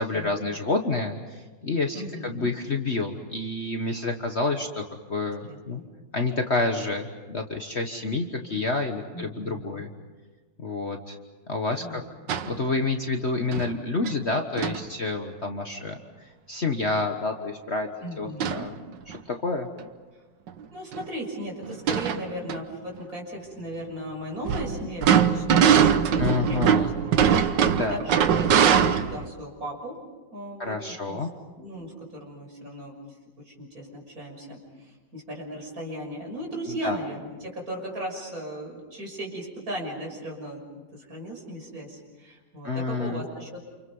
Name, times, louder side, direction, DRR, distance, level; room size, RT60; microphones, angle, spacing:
voice 1, 0.0-2.0 2.2-4.8 5.1-5.8 6.1-9.9 10.6-11.2 11.5-12.0 12.4-16.0 16.5-17.9 18.2-18.7 19.1-19.7 26.2-26.9 27.7-28.0 30.6-31.3 36.8-37.0 42.6-43.2, left 3 dB, 40° left, 4 dB, 1.5 m, -28 dB
voice 2, 1.9-2.5 5.4-5.9 9.1-9.7 11.8-12.0 18.0-18.7 20.7-25.8 26.1-26.7 27.0-30.0 30.3-31.2 31.6-32.9 33.4-43.6, right 1 dB, 50° right, 0 dB, 6.8 m, -37 dB
sound 1, 12.3-12.6 13.5-13.7 14.0-14.1 14.6-14.8 18.4-18.7 19.1-19.2 20.5-20.6 20.9-21.0 21.6-22.6 24.4-29.3, right 8 dB, 75° right, 1.7 m, -21 dB
29.5 x 28.5 x 5.5 m, 1.3 s
omnidirectional pair, 2.0 m